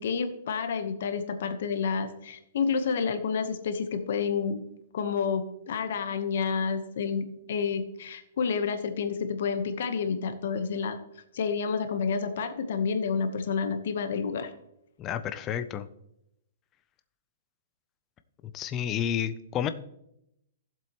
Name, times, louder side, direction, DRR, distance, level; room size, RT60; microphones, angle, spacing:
voice 1, 0.0-4.6 4.9-11.0 11.3-14.5, left 5 dB, 55° left, 9 dB, 1.0 m, -29 dB
voice 2, 15.0-15.9 18.5-19.7, left 9 dB, 15° left, 11 dB, 0.5 m, -30 dB
15.5 x 7.5 x 3.0 m, 0.79 s
hypercardioid pair, 175°, 0 cm